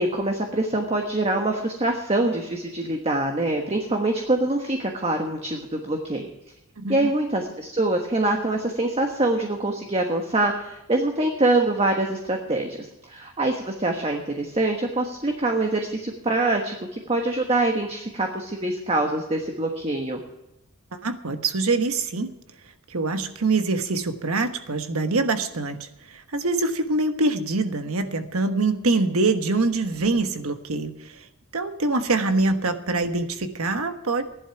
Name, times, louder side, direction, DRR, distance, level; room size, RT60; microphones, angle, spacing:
voice 1, 0.0-6.3 6.9-20.2, right 2 dB, 30° right, 3 dB, 1.3 m, -24 dB
voice 2, 6.8-7.1 20.9-22.3 22.9-31.3 31.5-34.2, right 3 dB, 75° right, 8 dB, 1.3 m, -24 dB
15.0 x 11.0 x 5.9 m, 0.92 s
head